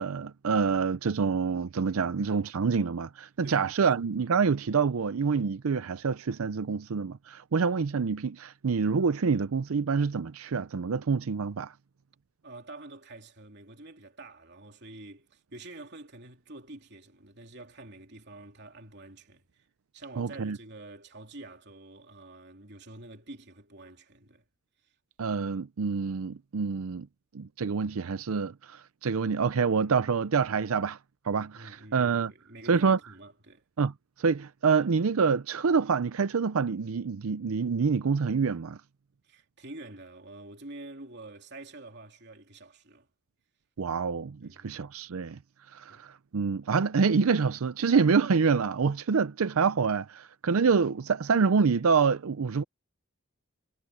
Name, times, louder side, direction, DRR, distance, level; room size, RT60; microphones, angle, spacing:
voice 1, 0.0-11.7 20.2-20.6 25.2-27.1 27.3-31.0 31.3-32.3 32.7-33.0 33.8-33.9 34.2-38.8 43.8-45.4 45.7-52.6, right 5 dB, 85° right, 0.5 m, -26 dB
voice 2, 3.4-3.9 12.4-19.7 19.9-24.4 24.8-24.9 31.5-33.6 39.2-43.1 44.4-44.8 45.9-46.1, right 2 dB, 55° right, 3.2 m, -47 dB
head